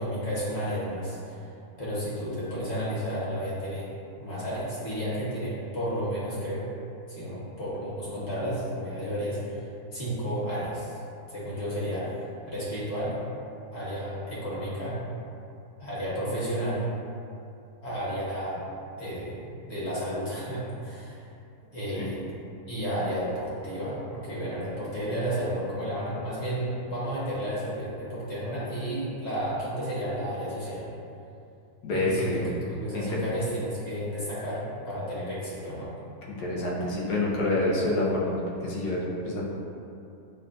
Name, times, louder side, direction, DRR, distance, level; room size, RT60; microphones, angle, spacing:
voice 1, 0.0-1.5 1.8-3.9 4.2-6.7 7.1-9.6 9.9-11.0 11.3-12.1 12.5-13.3 13.7-15.0 15.8-16.8 17.8-18.7 19.0-21.3 21.7-22.2 22.7-30.8 31.9-35.9, equal, 45° left, -9 dB, 1.3 m, -32 dB
voice 2, 31.8-32.5 32.9-33.2 36.4-39.4, left 2 dB, 85° left, -5 dB, 1.3 m, -27 dB
6.3 x 2.3 x 2.5 m, 2.6 s
omnidirectional pair, 1.7 m